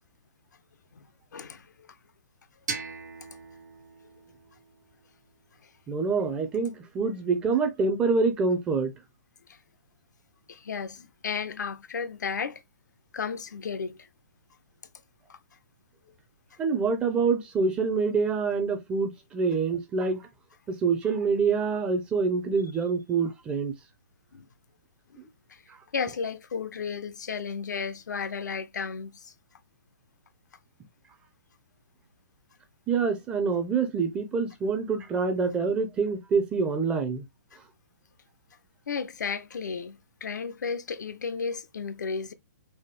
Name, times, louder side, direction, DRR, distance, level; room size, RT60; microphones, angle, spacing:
voice 1, 1.3-1.7 9.5-9.6 10.5-12.6 13.1-14.1 15.3-15.4 24.3-24.4 25.5-25.6 25.9-29.3 38.9-42.3, left 5 dB, 85° left, 0.6 m, -33 dB
sound 1, 2.7-5.5, right 4 dB, 80° right, 1.3 m, -40 dB
voice 2, 5.9-8.9 16.6-20.2 20.7-23.7 25.2-25.3 32.9-37.2, right 4 dB, 10° right, 0.4 m, -26 dB
4.1 x 2.0 x 3.2 m
hypercardioid pair, 160°, 9 cm